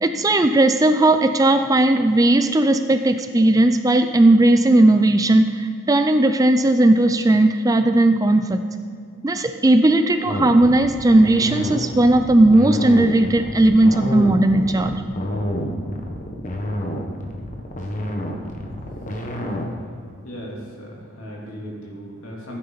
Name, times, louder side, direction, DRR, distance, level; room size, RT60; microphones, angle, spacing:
voice 1, 0.0-8.6 9.2-15.0, right 1 dB, 15° right, 8 dB, 0.4 m, -16 dB
sound 1, 10.3-19.7, equal, 35° left, 1.2 m, -28 dB
voice 2, 20.2-22.6, equal, 65° left, -4 dB, 3.2 m, -36 dB
16.0 x 9.4 x 4.0 m, 2.3 s
head